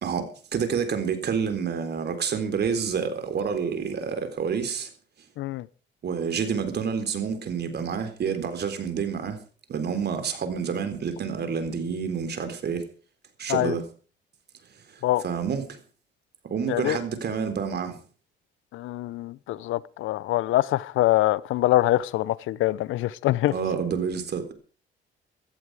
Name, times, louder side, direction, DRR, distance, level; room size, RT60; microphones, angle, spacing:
voice 1, 0.0-4.9 6.0-9.4 9.7-12.9 13.4-13.9 14.9-15.8 16.4-18.0 23.5-24.5, right 6 dB, 55° right, 3.9 m, -28 dB
voice 2, 18.7-23.5, left 15 dB, 85° left, 0.8 m, -24 dB
16.0 x 14.0 x 4.9 m
cardioid pair, 90°, 20 cm